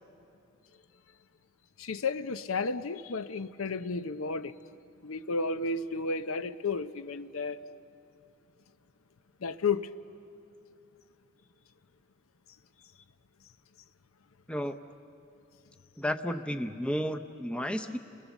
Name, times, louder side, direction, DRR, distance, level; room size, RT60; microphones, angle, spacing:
voice 1, 1.8-4.6 5.0-7.6 9.4-9.9, left 4 dB, 85° left, 12 dB, 0.7 m, -32 dB
voice 2, 16.0-18.0, equal, 5° left, 7 dB, 0.6 m, -32 dB
30.0 x 21.0 x 7.2 m, 2.6 s
head